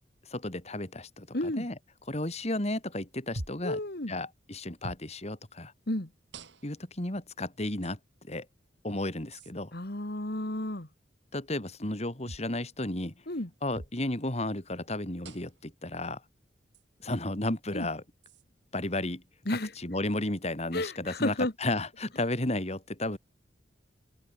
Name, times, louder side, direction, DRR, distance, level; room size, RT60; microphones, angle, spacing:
voice 1, 0.3-1.8 2.1-3.8 4.1-5.7 6.6-8.0 8.2-8.4 8.8-9.7 11.3-13.1 13.6-16.2 17.0-18.0 18.7-19.2 19.5-23.2, left 1 dB, 35° left, 3.0 m, -33 dB
voice 2, 1.3-1.7 3.6-4.1 5.9-6.1 9.7-10.9 13.3-13.5 17.7-17.9 19.5-19.7 20.7-21.5, left 1 dB, 60° left, 2.5 m, -32 dB
sound 1, 3.4-3.7 4.8-5.1 6.3-6.8 7.8-7.9 9.3-9.5 12.3-12.5 13.7-14.0 15.2-15.6 16.7-16.8 18.2-18.4, right 1 dB, 85° right, 3.0 m, -43 dB
head